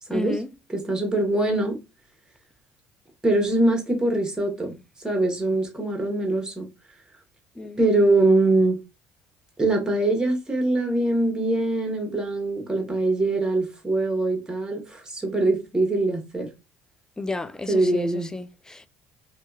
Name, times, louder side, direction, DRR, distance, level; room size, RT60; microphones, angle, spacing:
voice 1, 0.1-0.5 7.6-7.8 17.2-18.9, left 2 dB, 10° left, 0.4 m, -32 dB
voice 2, 0.7-1.8 3.2-4.8 5.0-6.7 7.8-8.8 9.6-16.5 17.7-18.3, right 2 dB, 15° right, 1.1 m, -23 dB
2.7 x 2.3 x 2.3 m
hypercardioid pair, 65°, 6 cm